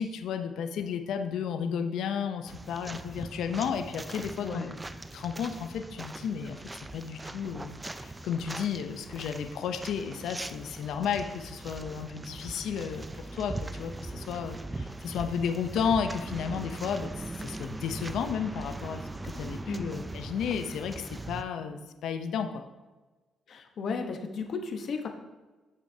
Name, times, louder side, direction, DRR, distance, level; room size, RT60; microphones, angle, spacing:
voice 1, 0.0-4.7 5.1-22.6, left 7 dB, 80° left, 7 dB, 0.6 m, -33 dB
sound 1, 2.5-21.4, right 2 dB, 15° right, 0.4 m, -40 dB
voice 2, 4.4-4.8 19.6-19.8 23.5-25.1, left 4 dB, 60° left, 4 dB, 1.0 m, -34 dB
9.8 x 6.3 x 2.7 m, 1.2 s
cardioid pair, 90°, 0 cm